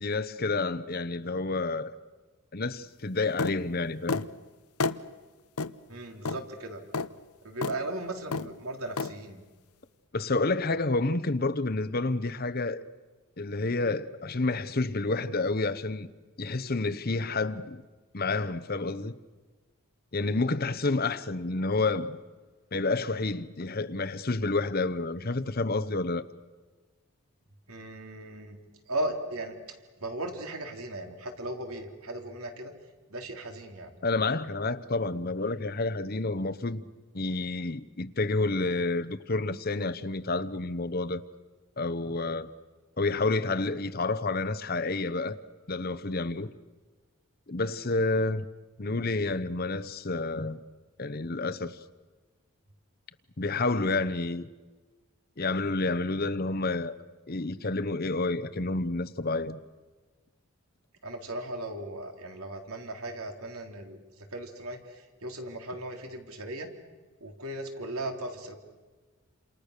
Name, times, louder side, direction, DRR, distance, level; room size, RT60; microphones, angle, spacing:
voice 1, 0.0-1.9 2.5-4.2 10.1-12.8 13.4-16.1 16.4-17.8 18.1-19.2 20.1-22.2 22.7-26.2 34.0-36.9 37.1-41.2 41.8-42.5 43.0-45.4 45.7-46.5 47.5-48.5 48.8-50.6 51.0-51.8 53.4-54.5 55.4-57.0 57.3-59.6, left 3 dB, 45° left, 0.9 m, -29 dB
sound 1, 3.4-3.6 4.1-4.3 4.8-5.0 5.6-5.7 6.3-6.4 6.9-7.1 7.6-7.8 8.3-8.5 9.0-9.1, left 4 dB, 90° left, 0.9 m, -29 dB
voice 2, 5.9-6.8 7.4-9.4 27.7-28.6 28.9-32.7 33.1-34.0 61.0-66.7 67.2-68.6, right 1 dB, 80° right, 3.7 m, -37 dB
29.0 x 27.5 x 6.7 m
head